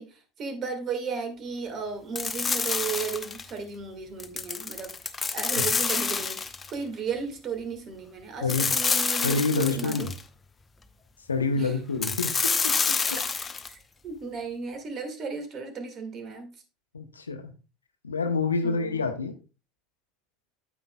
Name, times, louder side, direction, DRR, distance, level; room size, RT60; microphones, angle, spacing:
voice 1, 0.0-4.9 5.3-10.1 11.6-11.8 14.0-16.5 18.6-19.0, right 5 dB, 40° right, 1.9 m, -35 dB
sound 1, 2.1-3.5 4.2-6.7 8.5-10.2 12.0-13.7, left 5 dB, 25° left, 0.8 m, -28 dB
voice 2, 9.2-10.1 11.3-13.0 16.9-17.5 18.0-19.4, left 4 dB, 85° left, 0.8 m, -27 dB
9.1 x 8.1 x 2.3 m
figure-of-eight pair, 70°, 0 cm